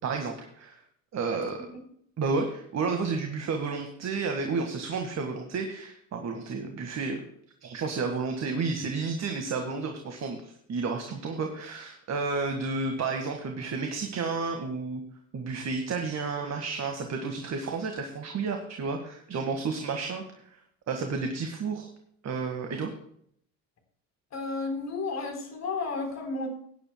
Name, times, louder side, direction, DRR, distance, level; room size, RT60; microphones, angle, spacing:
voice 1, 0.0-0.8 1.1-1.7 2.2-7.3 7.6-15.0 15.3-20.2 20.5-20.6 20.9-21.9 22.2-22.9, right 4 dB, 40° right, 4 dB, 1.8 m, -31 dB
voice 2, 24.3-26.5, left 3 dB, 40° left, 3 dB, 3.9 m, -32 dB
17.5 x 10.0 x 2.3 m, 0.66 s
hypercardioid pair, 65°, 39 cm